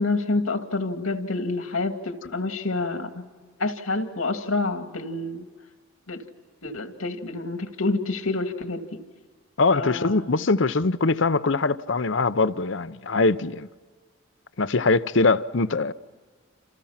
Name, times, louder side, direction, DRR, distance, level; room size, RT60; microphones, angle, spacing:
voice 1, 0.0-3.2 3.6-5.5 6.1-6.2 6.6-9.0 9.7-10.4, left 3 dB, 85° left, 2.4 m, -28 dB
voice 2, 9.6-13.7 14.6-15.9, left 3 dB, 60° left, 0.8 m, -22 dB
29.0 x 28.0 x 5.8 m
head